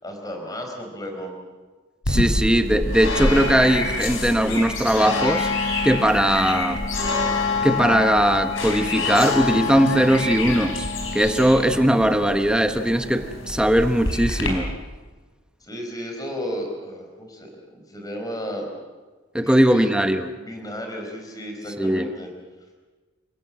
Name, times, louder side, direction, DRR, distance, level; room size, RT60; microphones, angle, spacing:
voice 1, 0.0-1.3 15.6-18.7 19.4-19.9 20.3-22.3, equal, 20° left, 2 dB, 4.8 m, -33 dB
sound 1, 2.0-14.5, left 2 dB, 85° left, 5.0 m, -26 dB
voice 2, 2.1-5.5 5.8-6.8 7.6-10.8 11.1-14.7 19.3-20.3 21.8-22.1, right 1 dB, 5° right, 6 dB, 1.0 m, -19 dB
29.0 x 17.0 x 7.6 m, 1.3 s
head